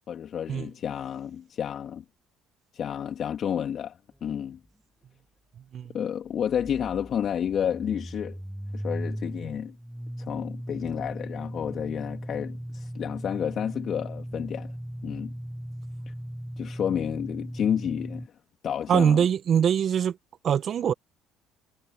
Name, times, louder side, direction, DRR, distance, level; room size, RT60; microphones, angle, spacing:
voice 1, 0.1-2.0 2.7-4.6 5.9-8.4 8.7-9.8 10.2-14.7 15.0-15.3 16.6-18.3 18.6-19.3, left 9 dB, 50° left, 3.5 m, -30 dB
sound 1, 4.3-4.4 4.7-4.8 6.3-18.3, equal, ahead, 1.3 m, -38 dB
voice 2, 18.9-20.2 20.4-20.9, right 8 dB, 50° right, 1.4 m, -23 dB
supercardioid pair, 70°, 0 cm